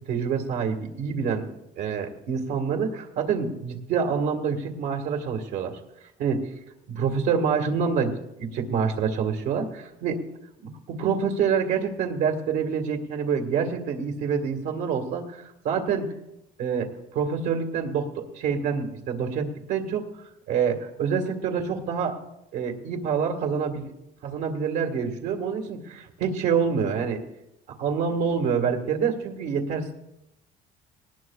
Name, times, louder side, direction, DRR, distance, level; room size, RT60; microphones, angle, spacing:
voice 1, 0.1-1.4 1.8-5.8 6.2-6.4 6.9-8.1 8.4-10.2 10.9-16.1 16.6-20.0 20.5-22.2 22.5-23.8 24.2-27.2 27.8-29.9, right 6 dB, 75° right, 3 dB, 1.8 m, -26 dB
19.0 x 19.0 x 2.4 m, 0.85 s
cardioid pair, 110°, 17 cm